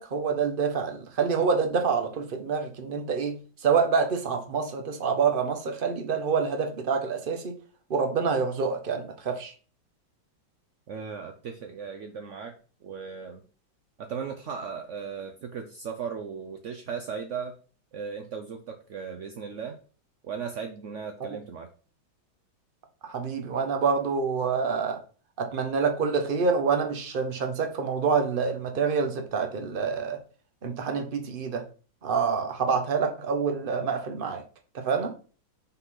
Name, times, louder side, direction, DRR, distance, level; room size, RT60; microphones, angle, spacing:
voice 1, 0.0-3.4 3.6-7.5 7.9-9.5 23.1-25.0 25.4-30.2 30.6-31.6 32.0-34.4 34.7-35.1, right 5 dB, 40° right, 5 dB, 0.9 m, -27 dB
voice 2, 10.9-13.4 14.0-17.6 17.9-19.8 20.2-21.7, right 6 dB, 65° right, 5 dB, 0.7 m, -37 dB
5.7 x 4.1 x 5.6 m, 0.38 s
omnidirectional pair, 2.1 m